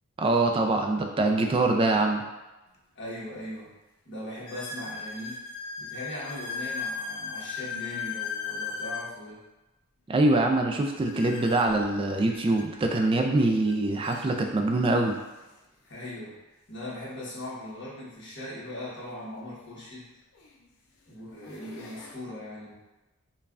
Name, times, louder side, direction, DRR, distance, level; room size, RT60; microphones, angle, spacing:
voice 1, 0.2-2.2 10.1-15.2, right 2 dB, 25° right, 3 dB, 0.3 m, -24 dB
sound 1, 2.7-2.8 3.5-3.6 4.5-9.1 11.0-12.7 13.7-13.8 14.0-14.2 15.0-15.1 17.3-17.4 19.5-19.6 20.3-20.6 21.2-22.1, left 5 dB, 90° left, 0.6 m, -37 dB
voice 2, 2.9-3.7 4.0-5.3 5.8-9.4 15.8-16.3 16.7-20.1 21.1-22.7, left 1 dB, 55° left, -7 dB, 1.2 m, -39 dB
5.3 x 2.3 x 2.4 m, 1.0 s
head